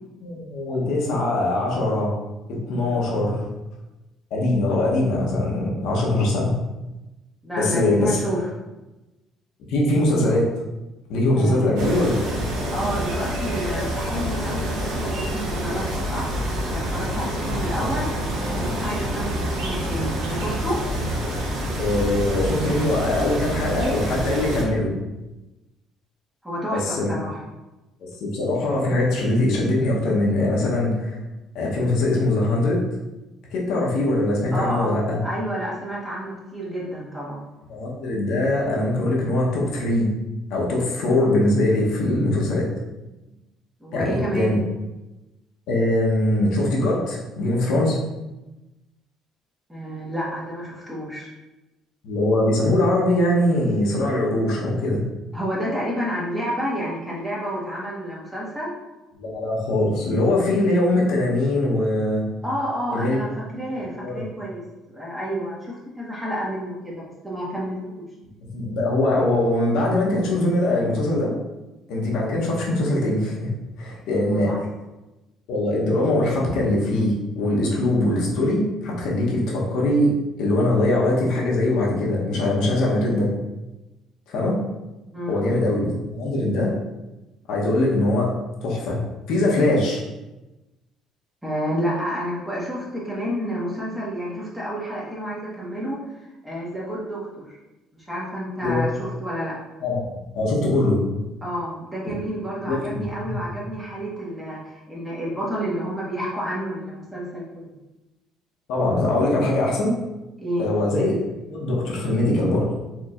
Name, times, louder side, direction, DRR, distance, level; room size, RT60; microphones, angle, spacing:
voice 1, 0.2-2.1 2.5-3.4 4.3-6.5 7.6-8.2 9.7-10.5 11.1-12.4 18.5-18.6 18.9-19.0 20.9-21.0 21.8-24.9 26.7-27.1 28.0-31.2 31.5-32.8 33.5-35.2 37.7-40.1 40.5-42.7 43.9-44.6 45.7-48.0 52.0-55.0 59.2-62.2 62.9-63.2 64.0-64.2 68.5-71.3 71.9-73.5 73.8-74.7 75.5-80.1 80.4-83.3 84.3-84.6 85.3-86.7 87.5-88.3 88.6-89.0 89.3-90.0 98.6-98.8 99.8-101.0 102.6-103.3 108.7-109.9 110.6-111.2 111.5-112.7, left 1 dB, 75° left, -3 dB, 1.0 m, -22 dB
voice 2, 7.4-8.4 11.3-11.7 12.7-16.3 16.7-18.1 18.5-20.8 26.4-27.4 34.5-37.4 43.8-44.6 49.7-51.3 55.3-58.7 62.4-64.6 64.9-67.8 74.3-74.6 85.1-85.4 91.4-96.1 96.4-97.6 97.9-99.5 101.4-107.7 110.4-110.7, equal, 10° right, -6 dB, 1.2 m, -30 dB
sound 1, 11.8-24.6, equal, 80° right, 1.0 m, -27 dB
4.5 x 3.0 x 2.5 m, 1.0 s
cardioid pair, 130°, 0 cm